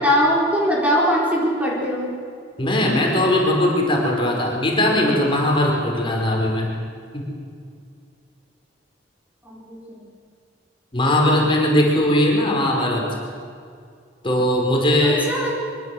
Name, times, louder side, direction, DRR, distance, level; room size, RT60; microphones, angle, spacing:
voice 1, 0.0-2.1 9.4-10.0 15.0-15.5, equal, 10° right, -3 dB, 4.4 m, -21 dB
voice 2, 2.6-6.7 7.1-7.3 10.9-13.1 14.2-15.2, left 1 dB, 30° left, -1 dB, 4.9 m, -19 dB
25.0 x 24.0 x 7.8 m, 2.3 s
head